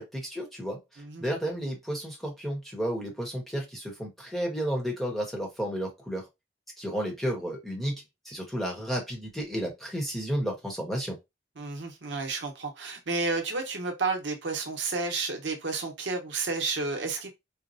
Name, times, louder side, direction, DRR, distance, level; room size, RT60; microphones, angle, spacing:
voice 1, 0.0-6.3 6.8-7.9 8.2-11.2, equal, ahead, 0.9 m, -32 dB
voice 2, 11.6-17.3, right 3 dB, 75° right, 0.8 m, -31 dB
4.1 x 2.0 x 2.6 m
head